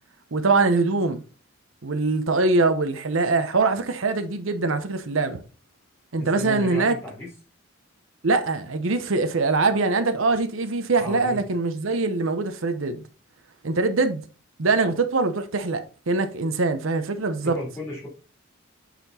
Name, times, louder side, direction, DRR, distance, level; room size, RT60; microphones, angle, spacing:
voice 1, 0.3-1.2 1.8-5.4 6.1-7.0 8.2-13.0 13.6-14.2 14.6-17.6, right 3 dB, 75° right, 0.8 m, -23 dB
voice 2, 6.2-7.3 11.0-11.4 17.4-18.1, left 1 dB, 10° left, 3.0 m, -34 dB
8.1 x 4.3 x 4.2 m
head